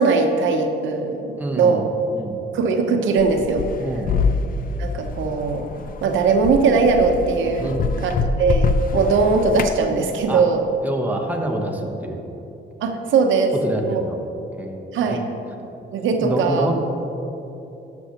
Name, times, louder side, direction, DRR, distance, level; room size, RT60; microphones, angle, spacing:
voice 1, 0.0-1.8 2.5-3.7 4.8-5.7 6.0-7.8 8.0-8.1 8.4-10.6 12.8-13.5 13.9-14.0 14.9-15.2 15.9-16.7, right 4 dB, 75° right, 4 dB, 0.8 m, -20 dB
voice 2, 1.3-1.9 2.1-2.4 3.8-4.1 7.6-8.0 10.3-10.4 10.8-12.2 13.6-14.2 14.5-15.2 16.2-16.7, right 2 dB, 10° right, 1 dB, 1.0 m, -26 dB
sound 1, 3.2-9.8, left 4 dB, 45° left, 0.5 m, -25 dB
12.5 x 6.3 x 2.9 m, 2.9 s
cardioid pair, 90°, 20 cm